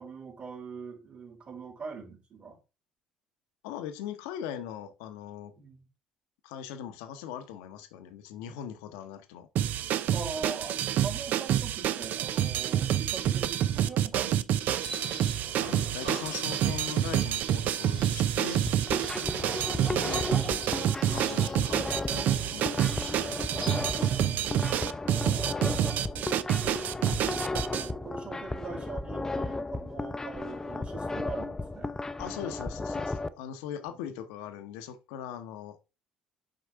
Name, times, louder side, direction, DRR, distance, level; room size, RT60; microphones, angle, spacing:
voice 1, 0.0-2.6 5.6-5.8 10.1-14.7 19.2-19.4 24.2-25.8 26.1-31.9 33.9-34.0, right 5 dB, 40° right, 2.8 m, -43 dB
voice 2, 3.6-5.5 6.4-9.5 15.1-15.2 15.6-18.6 19.8-21.9 22.1-23.3 32.2-35.8, left 9 dB, 70° left, 1.0 m, -40 dB
sound 1, 9.6-27.9, right 11 dB, 55° right, 0.6 m, -28 dB
sound 2, 14.8-24.2, right 2 dB, 90° right, 2.1 m, -44 dB
sound 3, 18.5-33.3, left 2 dB, 15° left, 0.6 m, -34 dB
7.7 x 5.3 x 3.5 m
figure-of-eight pair, 55°, 3 cm